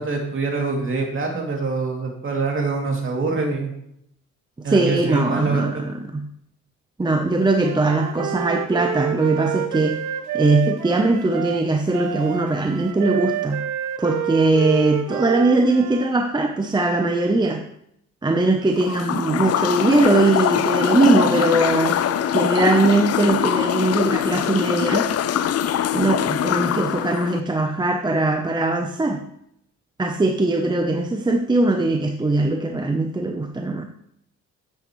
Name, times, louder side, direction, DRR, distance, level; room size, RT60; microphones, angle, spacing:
voice 1, 0.0-3.7 4.6-5.8, right 4 dB, 45° right, 0 dB, 2.6 m, -25 dB
voice 2, 4.6-6.3 7.0-10.0 10.3-13.6 14.0-17.6 18.2-22.0 22.3-25.1 25.9-29.2 30.0-33.8, right 2 dB, 15° right, 4 dB, 0.7 m, -20 dB
Wind instrument woodwind instrument, 7.6-16.1, right 11 dB, 75° right, 0.7 m, -28 dB
sound 1, 18.7-27.4, left 10 dB, 55° left, 0.6 m, -23 dB
9.2 x 8.9 x 3.1 m, 0.74 s
cardioid pair, 90°, 30 cm